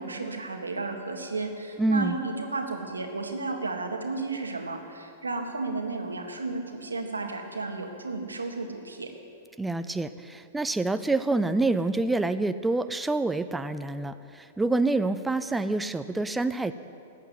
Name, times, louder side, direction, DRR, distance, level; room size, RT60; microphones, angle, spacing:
voice 1, 0.0-9.1, right 3 dB, 90° right, 4 dB, 1.8 m, -33 dB
voice 2, 1.8-2.2 9.6-16.7, right 2 dB, 5° right, 10 dB, 0.5 m, -27 dB
14.5 x 8.5 x 9.6 m, 2.6 s
hypercardioid pair, 105°, 0 cm